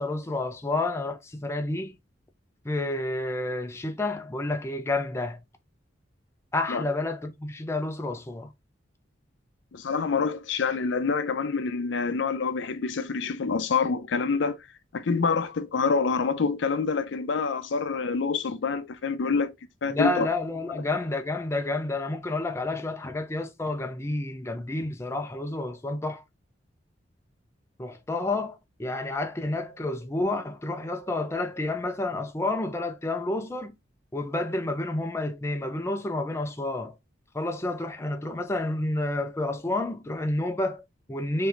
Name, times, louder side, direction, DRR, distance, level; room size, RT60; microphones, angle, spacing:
voice 1, 0.0-1.9 2.6-5.4 6.5-8.5 19.9-26.2 27.8-33.7 34.1-36.9 37.3-41.5, left 2 dB, 15° left, 0.4 m, -30 dB
voice 2, 9.7-14.6 14.9-19.5 19.8-20.3, left 5 dB, 70° left, 0.5 m, -26 dB
5.0 x 2.7 x 2.4 m
head